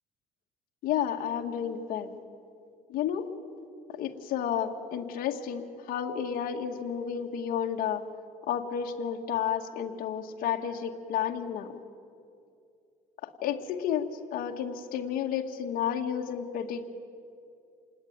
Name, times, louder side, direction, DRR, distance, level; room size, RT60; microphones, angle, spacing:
voice 1, 0.8-2.2 2.9-3.3 3.9-8.0 8.5-11.7 13.2-16.9, left 8 dB, 65° left, 3 dB, 2.0 m, -31 dB
27.5 x 19.5 x 9.5 m, 2.5 s
cardioid pair, 155°, 16 cm